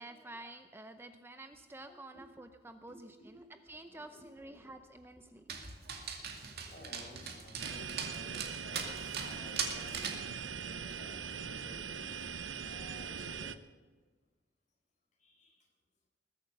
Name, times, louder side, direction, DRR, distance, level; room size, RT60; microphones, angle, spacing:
voice 1, 0.0-5.6, right 2 dB, 10° right, 8 dB, 0.6 m, -50 dB
voice 2, 2.9-3.5 3.9-4.8 6.7-12.4 12.6-13.6 15.2-15.7, left 1 dB, 45° left, 1 dB, 4.3 m, -55 dB
Dog, 5.5-10.3, right 6 dB, 60° right, 2.2 m, -40 dB
sound 1, 7.6-13.6, right 6 dB, 75° right, 0.8 m, -41 dB
21.0 x 8.8 x 6.6 m, 1.3 s
head